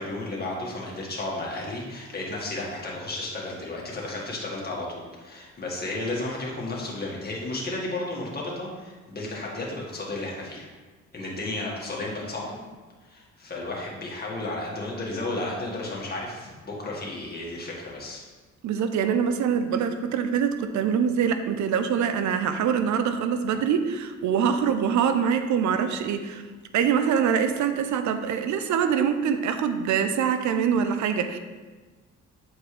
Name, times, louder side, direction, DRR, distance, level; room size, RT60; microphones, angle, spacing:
voice 1, 0.0-10.7 11.1-12.6 13.0-18.2, left 2 dB, 30° left, -4 dB, 1.9 m, -33 dB
voice 2, 18.6-26.4 26.7-31.4, right 7 dB, 70° right, 9 dB, 0.6 m, -24 dB
7.9 x 4.3 x 3.3 m, 1.3 s
cardioid pair, 90°, 30 cm